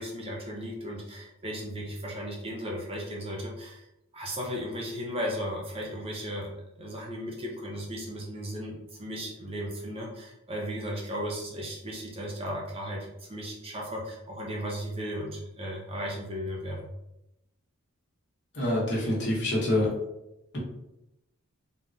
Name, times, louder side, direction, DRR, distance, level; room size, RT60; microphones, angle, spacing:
voice 1, 0.0-3.9 4.1-16.9, equal, 25° right, -2 dB, 0.5 m, -36 dB
voice 2, 18.5-19.9 20.5-20.6, left 1 dB, 50° left, -4 dB, 0.9 m, -26 dB
3.6 x 2.1 x 2.5 m, 0.86 s
head